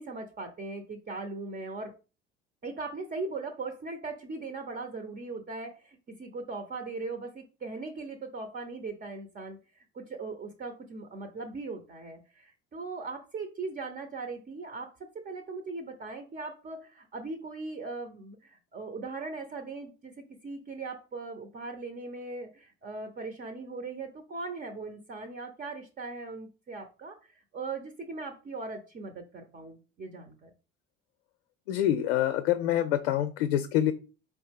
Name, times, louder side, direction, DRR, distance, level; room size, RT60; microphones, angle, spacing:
voice 1, 0.0-1.9 2.6-30.5, right 3 dB, 30° right, 6 dB, 0.9 m, -39 dB
voice 2, 31.7-33.9, left 11 dB, 80° left, 10 dB, 0.5 m, -26 dB
4.6 x 3.2 x 3.5 m, 0.33 s
hypercardioid pair, 60°, 30 cm